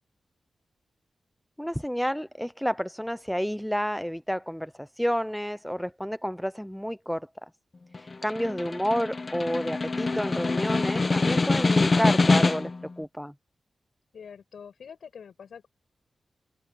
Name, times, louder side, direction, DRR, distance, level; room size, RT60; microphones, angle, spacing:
voice 1, 1.6-7.3 8.0-12.7 13.0-13.3, equal, ahead, 0.4 m, -30 dB
Snare drum, 7.9-12.9, left 3 dB, 35° left, 1.0 m, -24 dB
voice 2, 8.2-8.6 14.1-15.7, left 7 dB, 85° left, 5.8 m, -46 dB
wide cardioid pair, 105°, 0 cm